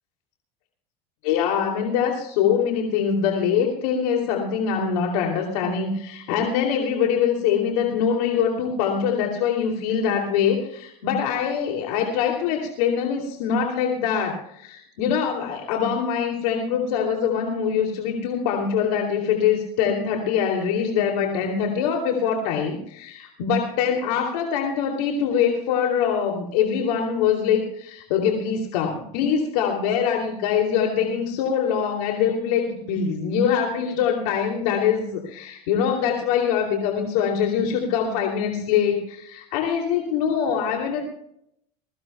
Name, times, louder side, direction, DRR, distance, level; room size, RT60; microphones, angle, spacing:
voice 1, 1.2-41.0, left 7 dB, 70° left, 1 dB, 2.9 m, -23 dB
22.0 x 15.5 x 2.3 m, 0.71 s
hypercardioid pair, 95°, 20 cm